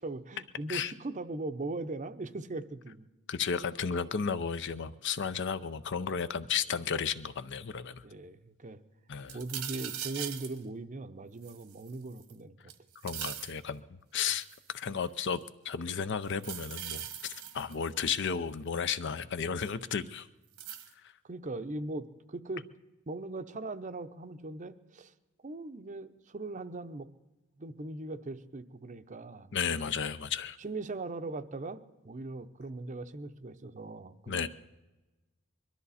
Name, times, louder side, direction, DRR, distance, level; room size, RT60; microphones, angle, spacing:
voice 1, 0.0-3.1 8.0-8.8 9.3-12.5 21.2-22.7 23.1-25.1 25.4-27.1 27.6-29.8 30.6-34.5, right 2 dB, 35° right, 11 dB, 0.7 m, -40 dB
voice 2, 3.3-8.0 9.1-9.4 13.0-13.8 14.1-14.5 14.7-15.4 15.6-20.3 29.5-30.6 34.3-34.5, left 6 dB, 55° left, 13 dB, 0.6 m, -33 dB
sound 1, 9.3-10.6 11.4-12.3 12.7-13.6 14.3-14.7 16.3-17.9 19.6-19.7 20.6-20.9, right 10 dB, 90° right, 1.4 m, -40 dB
22.0 x 13.0 x 4.2 m, 1.1 s
head